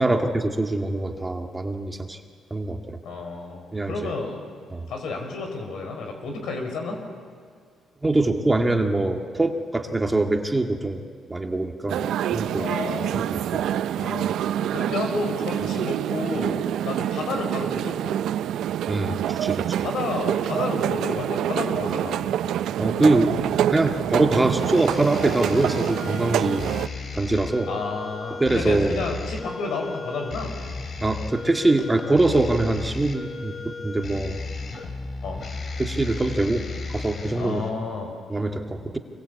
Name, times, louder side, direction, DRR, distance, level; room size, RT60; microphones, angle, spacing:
voice 1, 0.0-2.2 2.5-3.0 3.7-4.1 4.7-4.9 8.0-11.0 11.3-12.0 12.3-12.7 13.1-13.7 18.9-19.9 22.8-23.4 23.7-26.7 27.1-27.7 28.4-29.0 31.0-34.4 35.8-37.6 38.3-39.0, right 2 dB, 20° right, 4 dB, 2.0 m, -23 dB
voice 2, 3.0-4.4 4.9-7.0 12.6-13.2 14.0-16.6 16.8-18.2 19.8-22.2 27.7-30.5 35.2-35.4 37.4-38.1, left 3 dB, 75° left, 3 dB, 5.4 m, -31 dB
sound 1, 11.9-26.9, right 11 dB, 80° right, 0.5 m, -26 dB
sound 2, 23.2-37.7, left 3 dB, 50° left, 3.3 m, -35 dB
25.5 x 22.0 x 8.4 m, 2.2 s
cardioid pair, 90°, 0 cm